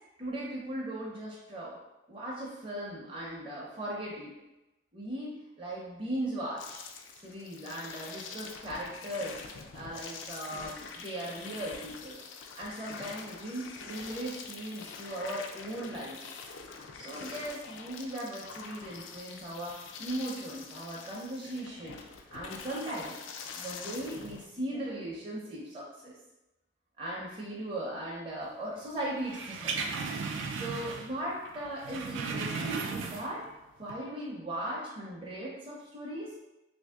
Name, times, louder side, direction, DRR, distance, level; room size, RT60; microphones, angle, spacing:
voice 1, 0.2-1.7 2.1-4.3 4.9-5.3 5.6-6.8 7.2-9.4 9.7-12.2 12.6-16.2 16.9-23.1 23.6-26.1 27.0-29.8 30.6-33.4 33.8-36.3, right 1 dB, 25° right, -6 dB, 0.6 m, -38 dB
sound 1, 6.6-24.4, left 5 dB, 80° left, 0.4 m, -45 dB
sound 2, 29.2-31.2 31.5-33.5 33.8-33.9, right 4 dB, 80° right, 0.4 m, -36 dB
3.0 x 2.6 x 3.4 m, 0.97 s
head